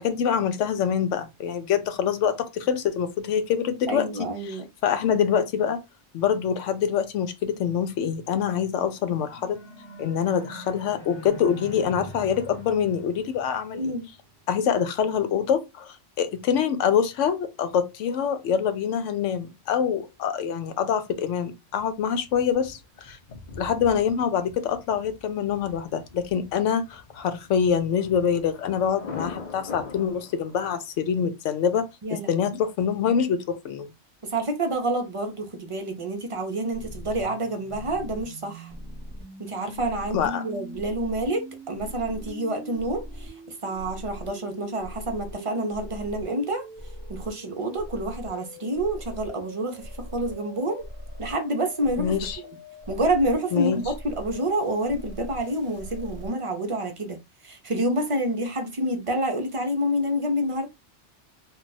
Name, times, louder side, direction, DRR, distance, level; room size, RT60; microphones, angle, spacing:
voice 1, 0.0-4.1 4.5-5.8 6.1-9.6 10.0-13.9 14.5-23.2 23.6-33.9 40.1-40.4 52.0-52.4 53.5-53.8, left 8 dB, 85° left, 0.9 m, -25 dB
voice 2, 3.9-4.6 13.7-14.0 32.0-32.5 34.3-38.7 39.4-46.6 47.1-49.8 50.1-50.8 51.2-52.1 52.9-57.2 57.4-60.7, right 1 dB, 40° right, 0.5 m, -28 dB
sound 1, 8.9-14.3, equal, 25° left, 0.9 m, -43 dB
Thunder, 21.7-30.7, left 4 dB, 45° left, 0.7 m, -42 dB
sound 2, 36.7-56.3, equal, 10° right, 0.9 m, -41 dB
2.3 x 2.3 x 3.9 m
omnidirectional pair, 1.2 m